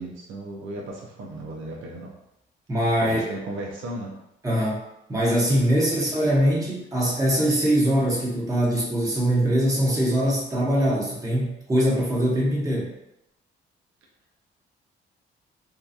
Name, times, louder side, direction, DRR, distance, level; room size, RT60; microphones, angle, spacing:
voice 1, 0.0-2.1 3.0-4.1, right 2 dB, 75° right, -2 dB, 0.6 m, -35 dB
voice 2, 2.7-3.2 4.4-4.8 5.1-12.9, equal, 15° right, -5 dB, 1.0 m, -22 dB
2.8 x 2.3 x 2.4 m, 0.84 s
cardioid pair, 90°, 20 cm